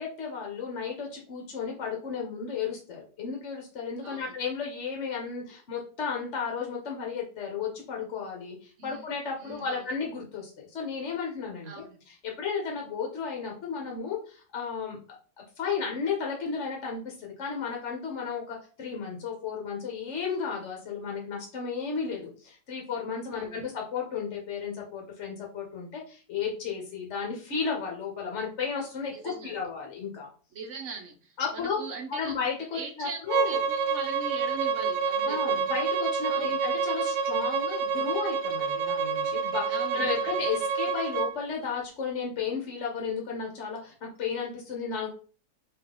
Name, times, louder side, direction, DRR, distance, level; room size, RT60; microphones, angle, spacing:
voice 1, 0.0-30.3 31.4-31.8 32.1-33.6 35.2-45.1, left 6 dB, 55° left, 0 dB, 1.0 m, -34 dB
voice 2, 4.0-4.3 8.8-9.0 9.4-9.8 11.6-12.0 23.3-23.6 29.1-29.5 30.5-32.4 32.7-35.4 36.3-36.5 39.7-40.4, right 4 dB, 55° right, 4 dB, 1.0 m, -41 dB
Bowed string instrument, 33.3-41.3, right 5 dB, 80° right, 1.2 m, -28 dB
3.6 x 3.0 x 3.6 m, 0.39 s
omnidirectional pair, 1.7 m